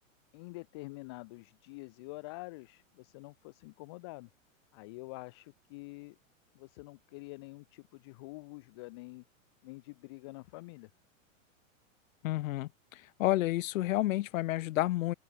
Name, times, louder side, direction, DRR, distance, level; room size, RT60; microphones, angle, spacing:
voice 1, 0.3-4.3 4.7-6.2 6.5-9.2 9.6-10.9, left 24 dB, 20° left, 0.4 m, -47 dB
voice 2, 12.2-12.7 13.2-15.1, left 16 dB, 75° left, 0.6 m, -29 dB
open air
supercardioid pair, 160°, 41 cm